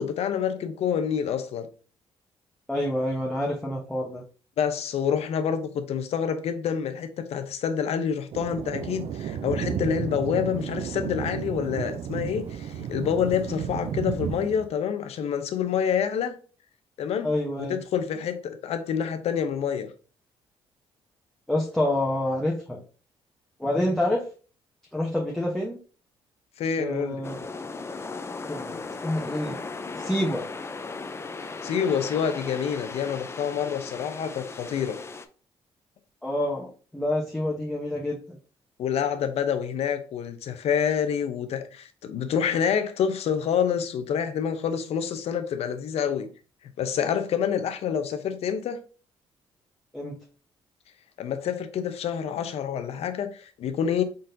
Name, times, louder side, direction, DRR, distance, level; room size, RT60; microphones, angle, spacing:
voice 1, 0.0-1.7 4.6-16.4 17.0-17.3 17.6-19.9 26.6-27.2 31.6-35.0 38.8-46.3 46.8-48.8 51.2-54.0, left 7 dB, 70° left, 0.7 m, -27 dB
voice 2, 2.7-4.2 17.2-17.8 21.5-22.8 23.6-24.2 24.9-25.8 26.8-27.4 28.5-29.6 29.9-30.4 36.2-38.4 49.9-50.2, left 1 dB, 5° left, 0.9 m, -27 dB
Thunder, 8.3-14.7, right 9 dB, 65° right, 0.4 m, -32 dB
sound 1, 27.2-35.3, left 4 dB, 25° left, 0.4 m, -37 dB
4.1 x 3.8 x 2.6 m
cardioid pair, 80°, 11 cm